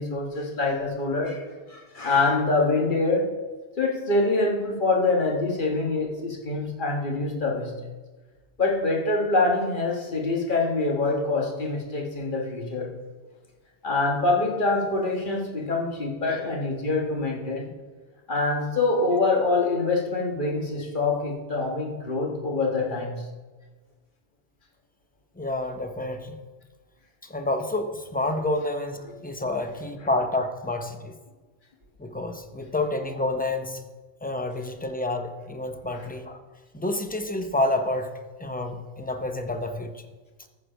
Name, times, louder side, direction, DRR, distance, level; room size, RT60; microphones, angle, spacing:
voice 1, 0.0-3.3 3.8-7.7 8.6-12.9 13.8-17.7 18.3-23.2 35.9-36.0, left 3 dB, 45° left, 0 dB, 1.6 m, -25 dB
voice 2, 25.4-26.4 27.2-31.1 32.0-33.8 34.2-36.4 36.7-38.1 38.4-39.9, left 2 dB, 10° left, 6 dB, 0.4 m, -29 dB
14.0 x 4.9 x 5.0 m, 1.3 s
omnidirectional pair, 1.2 m